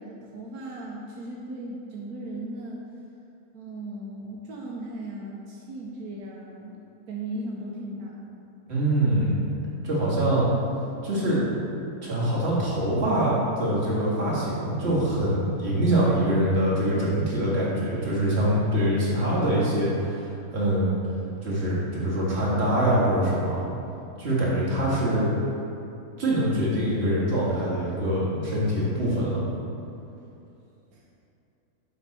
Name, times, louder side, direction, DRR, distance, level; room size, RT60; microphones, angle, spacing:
voice 1, 0.0-2.9 3.5-6.8 7.1-8.3 30.9-31.0, right 1 dB, 85° right, -3 dB, 1.2 m, -37 dB
voice 2, 8.7-9.4 9.8-10.5 11.0-11.4 12.0-20.9 21.4-23.7 24.2-25.3 26.2-29.4, right 1 dB, 45° right, -8 dB, 2.0 m, -24 dB
7.4 x 5.3 x 4.1 m, 2.8 s
omnidirectional pair, 1.5 m